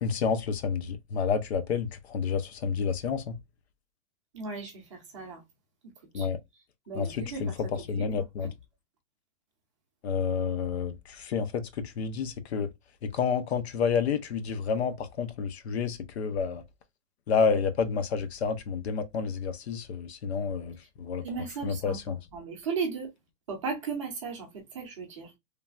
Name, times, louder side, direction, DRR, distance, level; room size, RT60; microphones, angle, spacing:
voice 1, 0.0-3.4 6.1-6.4 7.0-7.1 7.4-8.5 10.0-11.7 12.0-12.7 13.0-16.6 17.3-21.2 21.6-22.2, left 6 dB, 55° left, 0.5 m, -29 dB
voice 2, 4.3-5.4 6.1-6.3 6.5-7.7 8.0-8.5 21.2-23.1 23.5-25.3, right 5 dB, 25° right, 0.6 m, -36 dB
3.2 x 2.2 x 2.4 m
hypercardioid pair, 175°, 39 cm